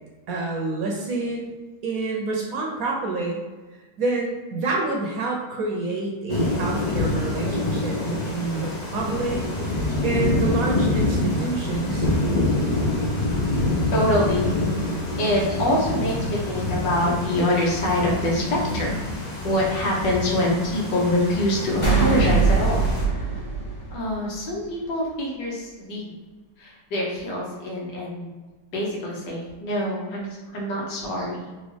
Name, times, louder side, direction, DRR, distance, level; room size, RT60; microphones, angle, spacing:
voice 1, 0.3-1.5 1.8-3.4 4.0-9.4 10.0-12.1, right 3 dB, 65° right, -1 dB, 1.0 m, -28 dB
Thunder / Rain, 6.3-23.0, left 2 dB, 45° left, 0.5 m, -26 dB
voice 2, 13.9-14.5 15.2-18.9 19.4-23.4 23.9-26.2 26.6-28.3 28.7-31.5, left 1 dB, 85° left, -3 dB, 1.8 m, -25 dB
sound 1, 21.8-24.4, right 4 dB, 15° left, 1.5 m, -21 dB
4.1 x 3.0 x 3.3 m, 1.3 s
omnidirectional pair, 1.9 m